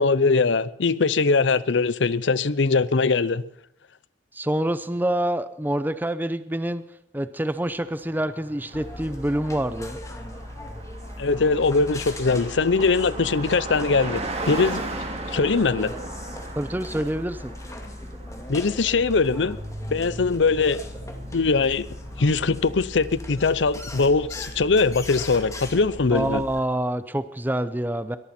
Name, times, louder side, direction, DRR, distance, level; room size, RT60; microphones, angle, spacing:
voice 1, 0.0-3.4 11.2-14.2 14.5-14.8 15.3-15.9 18.5-19.6 19.9-20.8 21.3-21.9 22.2-26.4, left 4 dB, 80° left, 0.7 m, -21 dB
voice 2, 4.3-6.8 7.1-10.0 16.6-17.5 26.1-28.2, right 1 dB, 10° right, 0.6 m, -26 dB
Car passing by, 7.7-23.7, right 2 dB, 35° right, 2.4 m, -38 dB
sound 1, 8.7-26.6, left 1 dB, 15° left, 2.3 m, -38 dB
22.0 x 14.5 x 4.3 m
head